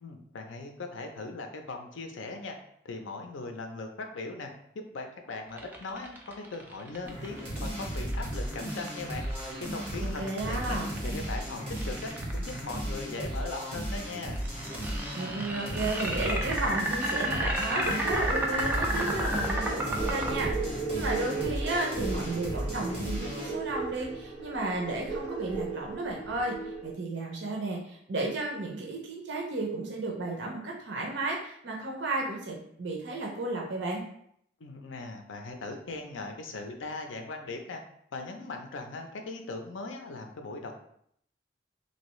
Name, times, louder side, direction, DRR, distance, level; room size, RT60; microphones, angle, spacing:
voice 1, 0.0-2.6 2.8-4.5 4.7-9.3 9.7-14.4 34.6-37.8 38.1-40.8, left 3 dB, 85° left, 4 dB, 0.5 m, -39 dB
sound 1, 5.5-12.8 14.3-20.3, right 1 dB, 10° right, 0.4 m, -32 dB
sound 2, 7.0-23.6, equal, 30° right, 1.2 m, -35 dB
voice 2, 10.0-10.9 15.1-26.6 26.8-34.0, right 2 dB, 70° right, -1 dB, 0.6 m, -33 dB
sound 3, 18.0-26.9, right 4 dB, 60° left, 1.4 m, -36 dB
3.2 x 2.7 x 3.0 m, 0.69 s
head